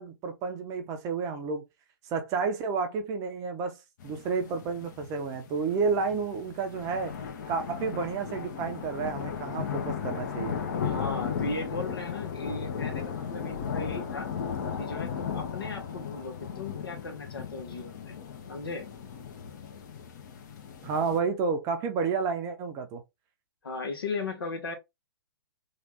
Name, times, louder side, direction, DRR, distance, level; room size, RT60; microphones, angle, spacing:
voice 1, 0.0-1.6 2.1-3.8 4.0-7.1 7.5-10.5 20.8-23.0, right 5 dB, 25° right, 0.6 m, -30 dB
sound 1, 4.0-21.2, left 7 dB, 45° left, 0.9 m, -36 dB
voice 2, 10.8-14.3 14.8-18.2 18.5-18.9 23.6-24.7, left 3 dB, 70° left, 1.2 m, -37 dB
3.2 x 2.5 x 2.9 m
figure-of-eight pair, 115°, 13 cm